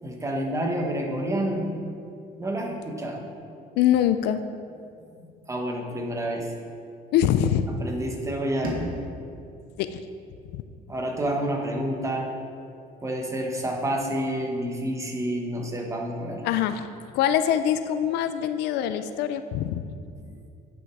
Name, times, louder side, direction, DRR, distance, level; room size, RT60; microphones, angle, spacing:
voice 1, 0.0-1.7 2.4-3.3 5.2-6.5 7.8-9.1 10.9-12.3 13.0-16.4, right 1 dB, 20° right, 1 dB, 1.4 m, -29 dB
voice 2, 3.8-4.4 7.1-7.7 9.8-10.0 10.5-10.6 16.4-19.8, left 10 dB, 85° left, 11 dB, 0.5 m, -24 dB
sound 1, 8.6-11.5, right 1 dB, 60° right, 1.8 m, -39 dB
10.0 x 6.0 x 4.7 m, 2.4 s
cardioid pair, 110°, 17 cm